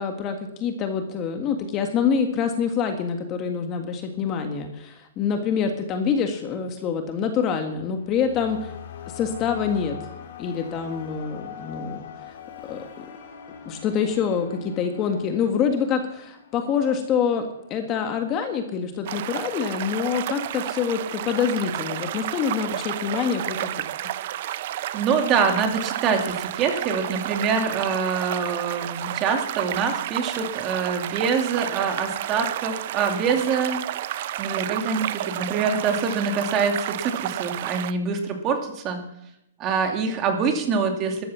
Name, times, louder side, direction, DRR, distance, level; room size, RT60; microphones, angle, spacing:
voice 1, 0.0-8.7 9.1-10.0 10.4-12.4 12.7-13.0 13.6-23.7, left 6 dB, 25° left, 6 dB, 1.7 m, -26 dB
sound 1, 7.8-17.8, left 8 dB, 55° left, 3.1 m, -42 dB
sound 2, 19.1-37.9, right 13 dB, 45° right, 0.7 m, -31 dB
voice 2, 24.9-33.9 34.4-39.0 39.6-41.2, right 5 dB, 25° right, 4 dB, 2.5 m, -25 dB
14.0 x 13.0 x 5.8 m, 0.78 s
hypercardioid pair, 160°, 0 cm